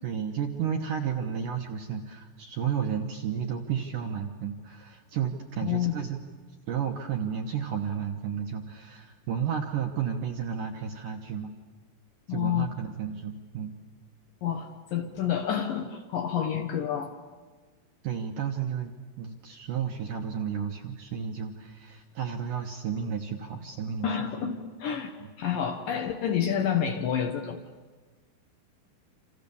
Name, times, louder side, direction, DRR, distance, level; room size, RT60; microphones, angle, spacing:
voice 1, 0.0-6.2 6.7-11.5 12.3-13.8 16.6-16.7 18.0-24.2 25.2-25.3, right 7 dB, 70° right, 3 dB, 2.1 m, -32 dB
voice 2, 5.6-5.9 12.3-12.7 14.4-17.1 24.0-25.1 25.4-27.6, left 9 dB, 65° left, 5 dB, 2.3 m, -29 dB
28.5 x 27.5 x 7.0 m, 1.4 s
omnidirectional pair, 5.2 m